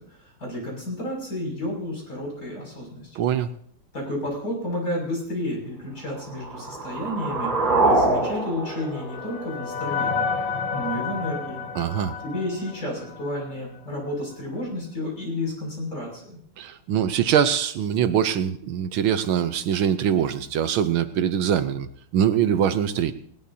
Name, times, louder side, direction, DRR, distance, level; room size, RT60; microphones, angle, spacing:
voice 1, 0.0-3.2 3.9-7.5 7.8-10.3 10.7-11.6 12.2-16.4, left 1 dB, 45° left, -2 dB, 7.0 m, -31 dB
voice 2, 3.1-3.5 11.7-12.1 16.6-21.9 22.1-23.1, right 9 dB, 75° right, 11 dB, 1.6 m, -23 dB
sound 1, 6.1-10.2, right 2 dB, 60° right, 3.3 m, -25 dB
sound 2, 8.2-13.6, left 5 dB, 65° left, 1.9 m, -31 dB
20.0 x 19.0 x 2.8 m, 0.66 s
omnidirectional pair, 2.3 m